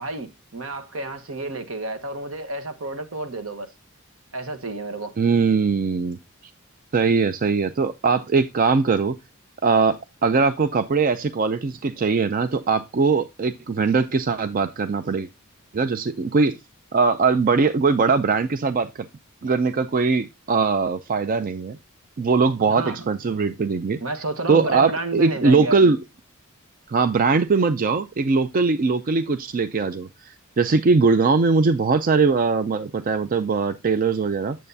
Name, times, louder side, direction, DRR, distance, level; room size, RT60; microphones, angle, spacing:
voice 1, 0.0-3.7 4.3-5.2 22.7-23.1 24.0-25.9, right 2 dB, 70° right, 1.2 m, -31 dB
voice 2, 5.2-6.2 6.9-9.2 9.6-15.3 15.7-16.6 16.9-19.1 19.4-21.8 22.2-24.0 24.5-26.0 26.9-34.6, right 4 dB, 40° right, 0.4 m, -21 dB
8.9 x 7.5 x 2.7 m
head